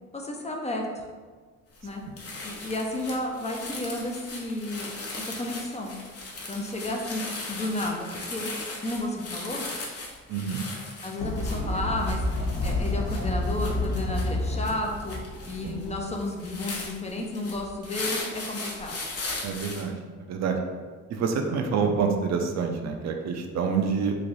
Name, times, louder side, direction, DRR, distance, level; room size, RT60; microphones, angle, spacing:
voice 1, 0.1-1.0 1.8-2.0 2.4-4.9 5.4-6.0 6.5-7.2 7.5-8.5 8.8-9.7 11.0-12.2 12.6-15.2 15.5-19.0, left 1 dB, 20° left, 0 dB, 0.5 m, -32 dB
sound 1, 1.7-1.9 2.2-19.8, left 3 dB, 50° left, 0.9 m, -38 dB
voice 2, 10.3-10.6 15.6-15.8 19.4-20.0 20.3-20.6 21.1-24.2, right 5 dB, 60° right, 4 dB, 0.5 m, -27 dB
Fowl, 11.2-16.5, left 2 dB, 85° left, 0.9 m, -29 dB
3.1 x 2.6 x 3.9 m, 1.5 s
cardioid pair, 90°, 30 cm